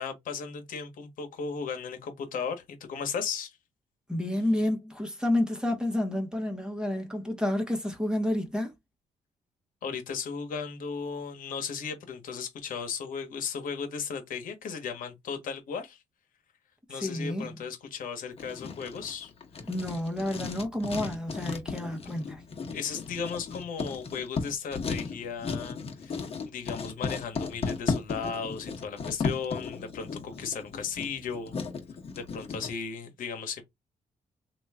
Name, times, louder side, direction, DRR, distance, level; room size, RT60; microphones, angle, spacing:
voice 1, 0.0-3.6 9.8-16.0 16.9-19.3 22.7-31.5 32.1-33.6, left 6 dB, 75° left, 1.1 m, -36 dB
voice 2, 4.1-8.7 16.9-17.5 19.7-22.5, left 1 dB, 5° right, 1.0 m, -30 dB
Writing, 18.4-32.7, left 4 dB, 45° left, 1.1 m, -35 dB
3.0 x 2.5 x 3.5 m
cardioid pair, 95°, 14 cm